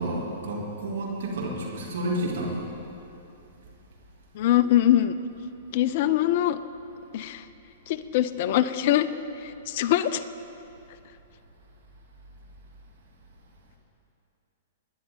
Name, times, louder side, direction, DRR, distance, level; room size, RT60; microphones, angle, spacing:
voice 1, 0.0-2.7, right 1 dB, 65° right, -2 dB, 2.9 m, -30 dB
voice 2, 4.4-5.2 5.7-6.6 7.1-7.4 7.9-9.1 9.4-10.2, left 12 dB, 55° left, 13 dB, 0.5 m, -23 dB
20.5 x 10.5 x 3.9 m, 2.8 s
hypercardioid pair, 115°, 0 cm